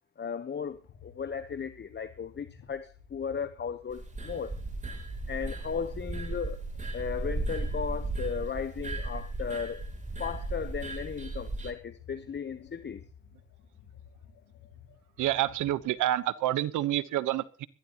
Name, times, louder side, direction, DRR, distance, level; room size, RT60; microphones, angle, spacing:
voice 1, 0.2-4.6 5.3-6.6 6.9-9.8 10.2-13.0, left 6 dB, 35° left, 1.0 m, -36 dB
sound 1, 0.6-16.3, left 8 dB, 90° left, 5.0 m, -54 dB
sound 2, 3.9-11.7, right 2 dB, 25° right, 3.4 m, -36 dB
voice 2, 15.2-17.7, right 14 dB, 90° right, 1.1 m, -28 dB
21.5 x 16.0 x 3.0 m
cardioid pair, 90°, 30 cm